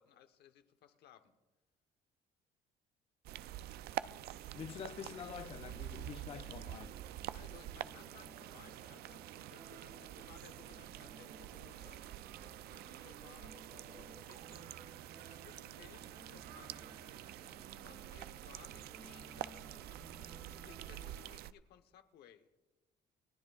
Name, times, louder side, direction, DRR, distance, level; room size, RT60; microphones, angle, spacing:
voice 1, 0.0-1.4 7.3-12.0 12.4-14.7 15.2-17.0 17.8-19.7 20.6-22.5, left 10 dB, 75° left, 1.0 m, -61 dB
sound 1, 3.3-21.5, right 13 dB, 70° right, 0.4 m, -47 dB
Wind instrument woodwind instrument, 3.4-11.7, right 4 dB, 45° right, 1.9 m, -67 dB
voice 2, 4.5-7.0, left 8 dB, 35° left, 0.4 m, -46 dB
sound 2, 4.7-21.3, right 1 dB, 20° right, 1.8 m, -59 dB
29.5 x 10.0 x 2.4 m
cardioid pair, 110°, 17 cm